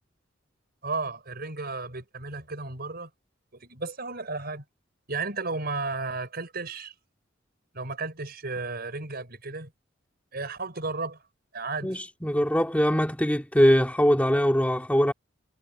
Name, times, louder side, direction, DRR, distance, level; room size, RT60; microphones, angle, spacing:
voice 1, 0.8-3.1 3.5-4.6 5.1-6.9 7.7-9.7 10.3-11.2 11.5-12.0, right 3 dB, 50° right, 5.3 m, -33 dB
voice 2, 11.8-15.1, equal, 10° left, 2.2 m, -22 dB
head